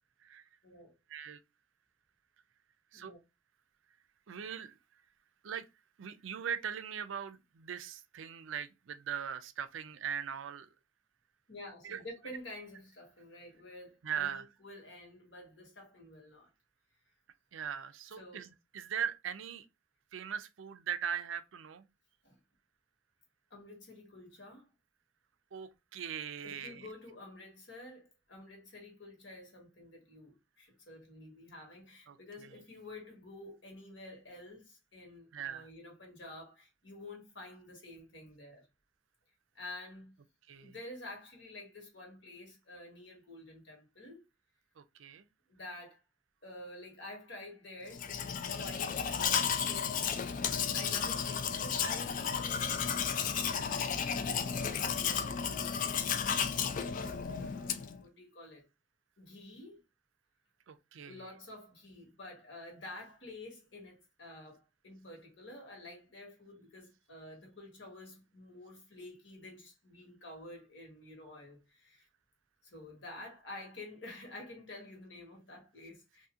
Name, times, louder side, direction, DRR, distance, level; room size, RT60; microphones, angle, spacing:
voice 1, 1.1-1.4 2.9-3.1 4.3-4.8 5.4-5.7 6.0-10.7 11.8-12.0 14.0-14.4 17.5-19.7 20.1-21.9 25.5-26.9 32.1-32.5 35.3-35.7 40.5-40.7 44.8-45.3 60.7-61.2, right 8 dB, 80° right, 0.4 m, -40 dB
voice 2, 11.5-16.5 18.2-18.4 22.2-22.4 23.5-24.7 26.4-38.7 39.5-40.1 40.6-44.2 45.5-46.0 46.4-50.1 50.7-55.9 56.2-56.5 57.4-58.7 59.2-59.8 61.1-72.1 72.6-76.3, left 2 dB, 70° left, 1.6 m, -50 dB
Domestic sounds home sounds, 47.9-58.0, left 7 dB, 45° left, 0.3 m, -33 dB
2.8 x 2.6 x 3.6 m
head